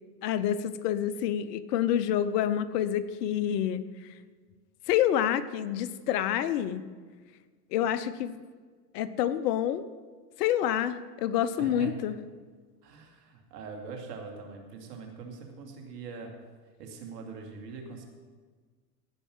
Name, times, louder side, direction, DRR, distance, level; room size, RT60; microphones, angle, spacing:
voice 1, 0.2-3.8 4.9-6.8 7.7-8.4 8.9-9.8 10.4-12.2, left 10 dB, 70° left, 14 dB, 0.9 m, -28 dB
voice 2, 11.6-12.0 12.8-16.3 16.8-18.1, right 5 dB, 75° right, 3 dB, 2.5 m, -42 dB
16.0 x 5.6 x 7.4 m, 1.5 s
hypercardioid pair, 95°, 49 cm